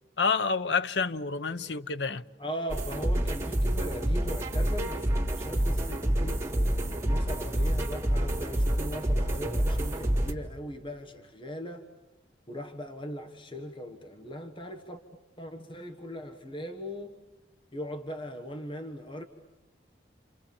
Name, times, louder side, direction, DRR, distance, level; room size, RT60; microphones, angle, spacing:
voice 1, 0.2-2.2, left 5 dB, 80° left, 0.9 m, -28 dB
voice 2, 2.4-11.9 12.5-15.0 15.4-17.2 17.7-19.2, equal, 30° left, 1.5 m, -39 dB
sound 1, 2.7-10.3, right 1 dB, 15° right, 3.0 m, -28 dB
30.0 x 27.5 x 7.2 m
head